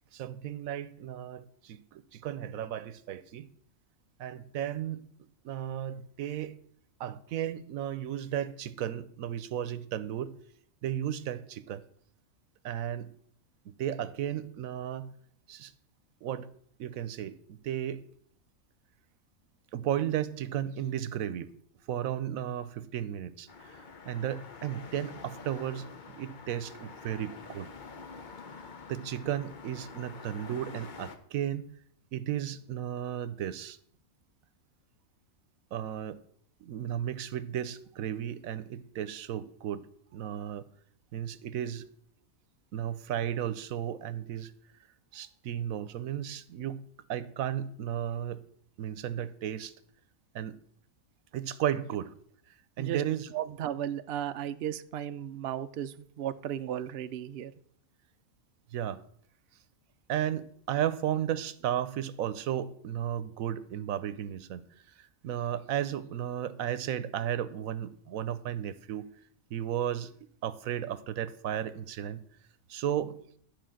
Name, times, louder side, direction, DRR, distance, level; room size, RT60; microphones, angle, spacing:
voice 1, 0.1-3.5 4.2-5.1 5.4-6.6 7.0-10.3 10.8-11.8 12.6-13.1 13.7-15.1 15.5-15.7 16.2-16.5 16.8-18.0 19.7-21.5 21.9-23.8 24.0-25.9 26.2-27.7 28.9-31.7 32.1-33.8 35.7-36.2 36.6-40.7 41.1-41.9 42.7-44.5 45.1-46.8 47.1-48.4 48.8-49.7 50.3-50.6 51.3-52.1 52.8-53.3 58.7-59.0 60.1-64.6 65.0-69.1 69.5-70.1 70.4-72.2 72.7-73.1, right 10 dB, 85° right, 1.1 m, -34 dB
sound 1, 23.5-31.2, left 5 dB, 40° left, 0.9 m, -47 dB
voice 2, 53.3-57.5, right 10 dB, 60° right, 0.7 m, -35 dB
12.0 x 4.6 x 7.6 m
omnidirectional pair, 1.4 m